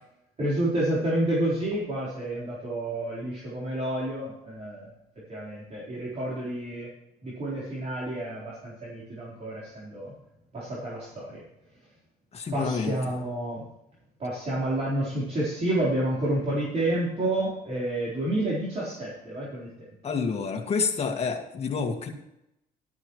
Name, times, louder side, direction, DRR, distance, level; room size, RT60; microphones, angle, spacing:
voice 1, 0.4-4.9 5.3-6.9 7.2-10.1 10.5-11.4 12.5-13.7 14.2-19.7, right 1 dB, 40° right, -7 dB, 4.1 m, -29 dB
voice 2, 12.3-12.9 20.0-22.1, left 5 dB, 35° left, 3 dB, 2.0 m, -28 dB
12.5 x 12.0 x 3.2 m, 0.84 s
cardioid pair, 110°, 17 cm